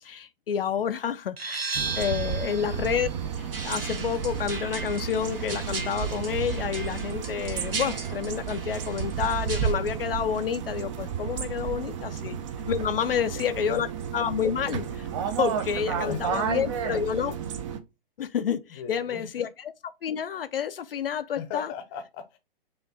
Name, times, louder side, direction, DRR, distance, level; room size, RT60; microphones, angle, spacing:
voice 1, 0.0-3.1 3.4-12.4 12.7-13.9 14.1-17.4 18.2-19.7 20.0-21.7, left 8 dB, 70° left, 0.4 m, -29 dB
sound 1, 1.4-6.8, right 4 dB, 85° right, 1.1 m, -37 dB
sound 2, 1.7-17.8, right 7 dB, 35° right, 0.5 m, -32 dB
sound 3, 3.5-9.7, right 3 dB, 70° right, 1.6 m, -38 dB
voice 2, 15.9-16.6 17.3-17.4 18.7-19.5 21.4-22.4, left 7 dB, 25° left, 0.7 m, -38 dB
4.9 x 2.5 x 3.6 m
figure-of-eight pair, 120°, 29 cm